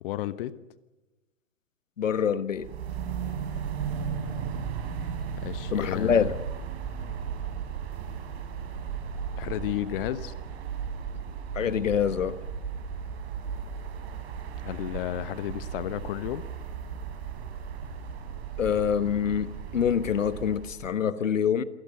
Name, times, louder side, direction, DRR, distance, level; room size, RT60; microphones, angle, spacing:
voice 1, 0.0-0.5 5.4-6.3 9.4-10.3 14.6-16.4, left 14 dB, 45° left, 1.1 m, -32 dB
voice 2, 2.0-2.7 5.7-6.3 11.5-12.4 18.6-21.6, left 8 dB, 75° left, 1.3 m, -26 dB
sound 1, 2.5-20.8, right 7 dB, 50° right, 6.0 m, -35 dB
28.0 x 17.5 x 6.9 m
hypercardioid pair, 120°, 39 cm